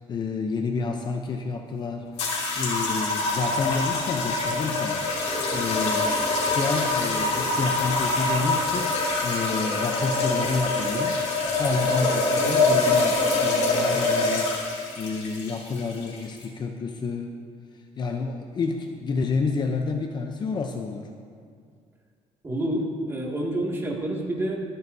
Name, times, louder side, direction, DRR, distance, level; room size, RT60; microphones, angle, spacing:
voice 1, 0.0-5.0 5.5-14.5 15.0-17.3 18.0-21.1, left 4 dB, 35° left, 4 dB, 0.7 m, -29 dB
sound 1, 2.2-16.4, left 3 dB, 70° left, 3.1 m, -25 dB
voice 2, 22.4-24.6, right 1 dB, 20° right, -3 dB, 2.2 m, -28 dB
24.5 x 9.5 x 2.8 m, 2.1 s
cardioid pair, 140°, 13 cm